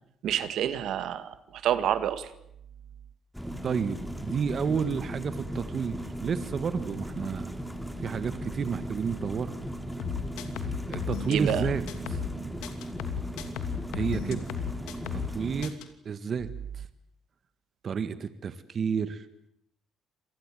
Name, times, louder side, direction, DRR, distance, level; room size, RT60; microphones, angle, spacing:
voice 1, 0.2-2.3 11.3-11.7 12.3-12.5, right 10 dB, 70° right, 12 dB, 2.0 m, -28 dB
sound 1, 3.3-15.7, right 1 dB, ahead, 3.0 m, -37 dB
voice 2, 3.6-7.5 8.0-9.5 10.9-11.8 12.1-12.3 13.9-14.5 15.1-16.5 16.7-16.8 17.8-19.3, right 6 dB, 45° right, 12 dB, 1.7 m, -31 dB
sound 2, 10.0-12.3 12.6-15.3 15.6-15.9, left 8 dB, 90° left, 2.7 m, -34 dB
27.0 x 19.5 x 9.2 m, 0.77 s
cardioid pair, 90°, 0 cm